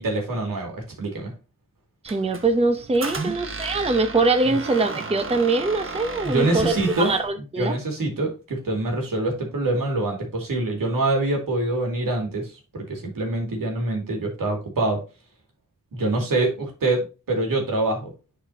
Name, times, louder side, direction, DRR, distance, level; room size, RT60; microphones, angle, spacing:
voice 1, 0.0-1.3 3.2-3.4 6.2-7.2 7.6-15.0 15.9-18.1, right 2 dB, 80° right, 1 dB, 2.4 m, -25 dB
voice 2, 2.0-7.8, right 3 dB, 20° right, 7 dB, 0.7 m, -23 dB
Squeak, 2.1-7.3, right 3 dB, 40° right, 1.1 m, -35 dB
10.5 x 4.3 x 2.8 m, 0.31 s
wide cardioid pair, 85°, 33 cm